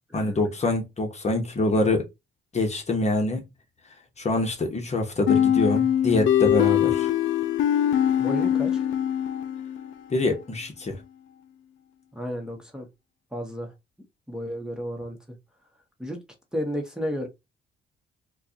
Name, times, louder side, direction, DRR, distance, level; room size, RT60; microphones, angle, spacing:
voice 1, 0.1-2.1 2.5-3.4 4.2-7.1 10.1-11.0, left 2 dB, 35° left, 1.2 m, -25 dB
sound 1, 5.3-9.9, left 10 dB, 75° left, 0.5 m, -22 dB
voice 2, 8.2-8.9 12.1-12.9 13.3-13.7 14.3-15.2 16.0-16.2 16.5-17.3, equal, 5° right, 1.1 m, -32 dB
4.5 x 2.3 x 2.8 m
cardioid pair, 90°, 20 cm